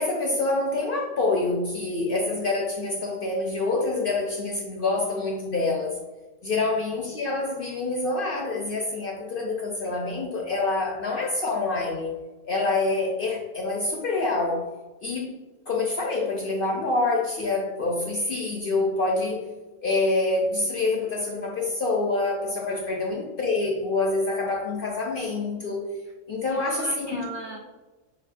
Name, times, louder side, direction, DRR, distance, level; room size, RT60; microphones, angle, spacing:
voice 1, 0.0-6.0 6.4-12.1 12.4-14.7 15.0-15.3 15.7-19.5 19.8-26.0 26.3-27.2, left 3 dB, 60° left, 0 dB, 0.6 m, -26 dB
voice 2, 26.5-27.6, right 2 dB, 70° right, 0 dB, 0.5 m, -38 dB
6.6 x 2.3 x 2.5 m, 1.2 s
omnidirectional pair, 1.4 m